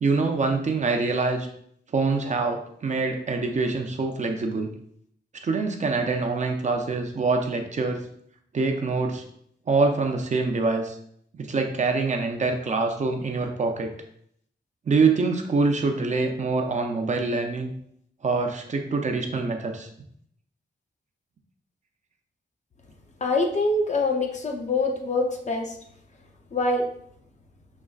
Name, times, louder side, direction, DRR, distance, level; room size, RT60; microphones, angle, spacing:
voice 1, 0.0-1.5 1.9-4.7 5.4-8.0 8.5-9.2 9.7-11.0 11.3-13.9 14.9-17.7 18.2-19.9, right 3 dB, 40° right, 4 dB, 0.5 m, -25 dB
voice 2, 23.2-25.8 26.5-26.9, left 2 dB, 40° left, 2 dB, 0.6 m, -24 dB
6.2 x 3.1 x 2.3 m, 0.68 s
wide cardioid pair, 175°, 19 cm